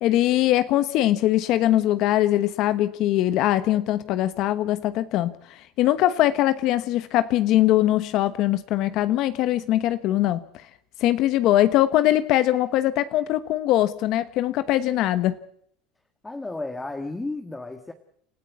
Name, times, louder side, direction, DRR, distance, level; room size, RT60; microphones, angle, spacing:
voice 1, 0.0-10.4 11.0-15.4, left 14 dB, 55° left, 1.1 m, -22 dB
voice 2, 16.2-17.9, left 2 dB, 10° left, 1.6 m, -33 dB
29.0 x 14.0 x 8.3 m
supercardioid pair, 135°, 0 cm